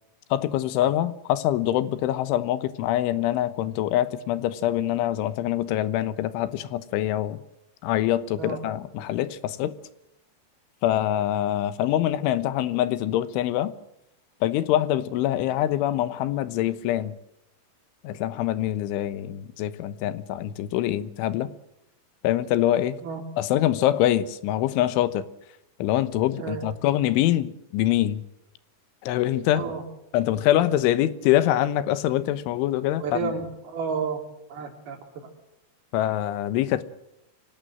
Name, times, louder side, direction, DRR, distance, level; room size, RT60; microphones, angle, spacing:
voice 1, 0.3-7.4 7.8-9.8 10.8-13.8 14.4-17.2 18.0-21.5 22.2-23.0 23.4-25.3 25.8-28.2 29.0-29.6 30.1-33.3 35.9-36.8, left 13 dB, 90° left, 3.6 m, -24 dB
voice 2, 33.0-34.2 34.5-35.3, right 5 dB, 55° right, 4.9 m, -31 dB
25.0 x 18.0 x 7.8 m
omnidirectional pair, 5.4 m